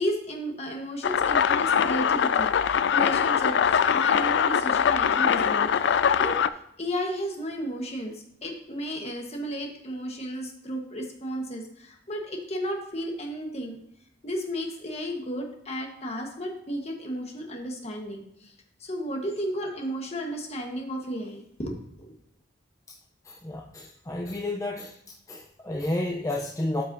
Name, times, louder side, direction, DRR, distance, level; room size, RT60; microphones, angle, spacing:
voice 1, 0.0-6.4 6.8-13.8 14.2-18.5 18.8-22.1, equal, 35° left, 2 dB, 1.3 m, -33 dB
sound 1, 1.0-6.5, left 7 dB, 65° left, 0.3 m, -22 dB
voice 2, 23.3-24.9 25.3-26.8, left 1 dB, 15° left, -1 dB, 0.5 m, -31 dB
12.5 x 5.4 x 2.7 m, 0.73 s
head